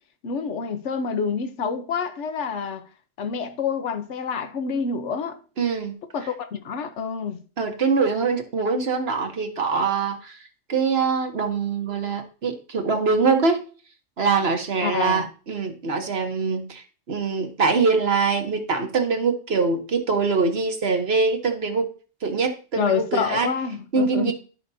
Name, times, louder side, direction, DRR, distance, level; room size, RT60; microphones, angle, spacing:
voice 1, 0.2-2.9 3.2-5.4 6.1-7.4 14.8-15.2 22.8-24.3, left 6 dB, 65° left, 1.1 m, -27 dB
voice 2, 5.6-5.9 7.6-10.4 10.7-13.6 14.2-21.9 22.2-23.5 23.9-24.3, right 4 dB, 55° right, 1.3 m, -23 dB
13.0 x 5.0 x 2.7 m
omnidirectional pair, 1.3 m